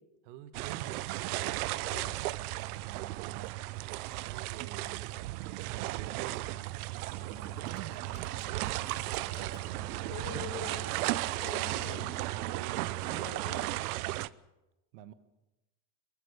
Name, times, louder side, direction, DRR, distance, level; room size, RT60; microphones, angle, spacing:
voice 1, 0.2-1.2 2.5-3.6 4.1-5.1 5.8-6.8 7.2-8.3 12.3-13.2 14.9-15.1, right 11 dB, 60° right, 12 dB, 1.3 m, -47 dB
sound 1, 0.5-14.3, right 17 dB, 85° right, 0.8 m, -35 dB
sound 2, 3.7-10.7, right 6 dB, 15° right, 1.7 m, -59 dB
sound 3, 7.2-12.6, left 8 dB, 25° left, 1.4 m, -55 dB
voice 2, 10.1-10.9 11.4-12.1 13.0-13.7, left 7 dB, 40° left, 3 dB, 5.3 m, -44 dB
23.0 x 20.0 x 6.7 m, 1.0 s
cardioid pair, 175°, 43 cm